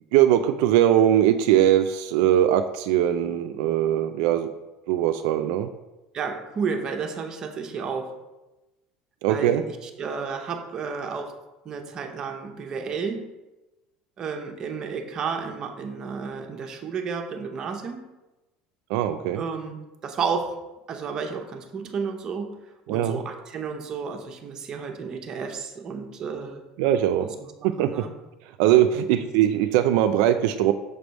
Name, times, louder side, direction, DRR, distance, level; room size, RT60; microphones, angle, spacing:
voice 1, 0.1-4.5 4.9-5.7 9.2-9.6 18.9-19.4 22.9-23.2 26.8-27.3 27.6-27.9 28.6-30.7, right 11 dB, 75° right, 8 dB, 0.3 m, -21 dB
voice 2, 6.1-8.1 9.3-11.3 11.6-13.2 14.2-18.0 19.4-20.5 20.9-22.6 22.9-26.6 27.2-27.3 27.6-28.1 29.0-29.1, right 5 dB, 30° right, 4 dB, 0.7 m, -32 dB
6.6 x 3.4 x 5.2 m, 1.0 s
cardioid pair, 165°, 2 cm